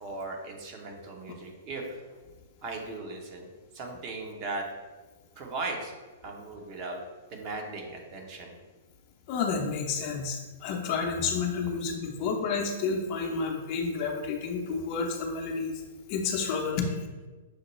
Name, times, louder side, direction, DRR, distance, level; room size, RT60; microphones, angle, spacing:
voice 1, 0.0-2.2 2.6-3.5 3.7-4.6 5.4-5.9 6.2-7.0 7.3-8.5, right 3 dB, 40° right, 1 dB, 0.8 m, -37 dB
voice 2, 9.3-15.7 16.1-17.0, left 5 dB, 40° left, 2 dB, 0.6 m, -30 dB
6.4 x 2.2 x 3.1 m, 1.3 s
figure-of-eight pair, 105°, 0 cm